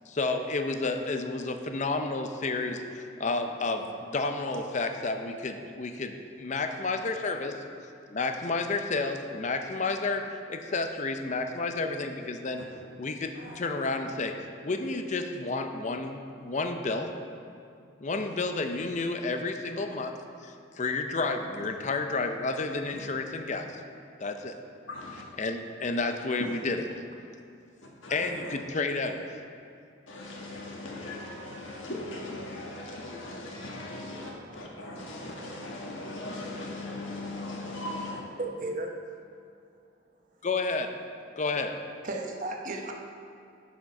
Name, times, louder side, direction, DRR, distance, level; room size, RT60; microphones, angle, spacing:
voice 1, 0.1-7.6 8.1-12.6 13.0-14.3 14.6-17.1 18.0-23.8 24.2-24.5 25.4-26.8 28.1-29.2 40.4-40.9 41.4-41.7, left 3 dB, 35° left, 6 dB, 0.5 m, -31 dB
voice 2, 24.9-25.2 26.4-26.6 28.0-28.6 30.1-38.2, left 2 dB, 75° left, -2 dB, 1.4 m, -39 dB
voice 3, 38.4-38.9 42.0-42.9, right 2 dB, 45° right, 2 dB, 0.9 m, -34 dB
10.0 x 5.1 x 5.4 m, 2.5 s
head